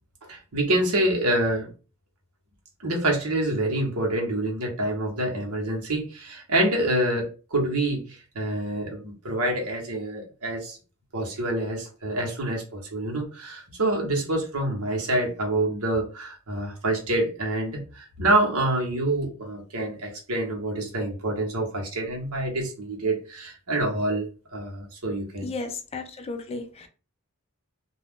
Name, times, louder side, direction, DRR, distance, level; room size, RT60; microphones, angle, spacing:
voice 1, 0.3-1.7 2.8-10.8 11.1-25.5, right 1 dB, 85° right, 0 dB, 1.0 m, -27 dB
voice 2, 25.4-26.9, left 3 dB, 30° left, 7 dB, 0.4 m, -34 dB
2.3 x 2.3 x 3.5 m, 0.35 s
head